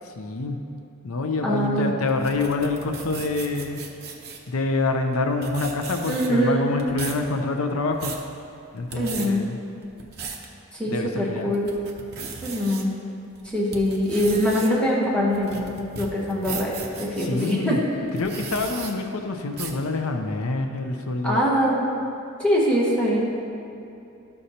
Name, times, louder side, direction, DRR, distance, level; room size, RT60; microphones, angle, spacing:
voice 1, 0.0-0.6 1.0-3.8 4.5-8.2 8.7-9.6 10.8-11.5 17.1-17.8 18.2-21.4, left 3 dB, 80° left, 5 dB, 0.6 m, -26 dB
voice 2, 1.4-1.9 6.1-6.7 8.9-9.5 10.8-11.7 12.4-12.9 13.5-17.8 21.2-21.9 22.4-23.3, equal, 5° left, -6 dB, 1.0 m, -23 dB
sound 1, 2.1-4.5 5.1-5.2 5.4-6.5 6.8-7.2 7.7-8.2 8.8-9.3 9.8-10.5 11.0-11.1 11.5-12.8 13.3-17.5 18.1-18.9 19.5-19.8, right 5 dB, 50° right, 0.8 m, -36 dB
12.0 x 6.5 x 2.8 m, 2.7 s
head